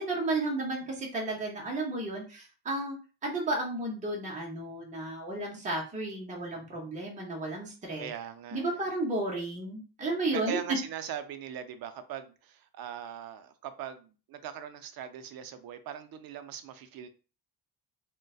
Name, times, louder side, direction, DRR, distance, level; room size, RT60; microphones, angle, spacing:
voice 1, 0.0-3.0 3.2-8.1 8.5-10.6, right 2 dB, 20° right, 0.7 m, -33 dB
voice 2, 8.0-8.8 10.3-17.1, right 9 dB, 65° right, 0.5 m, -40 dB
3.8 x 2.2 x 2.3 m
cardioid pair, 175°, 40 cm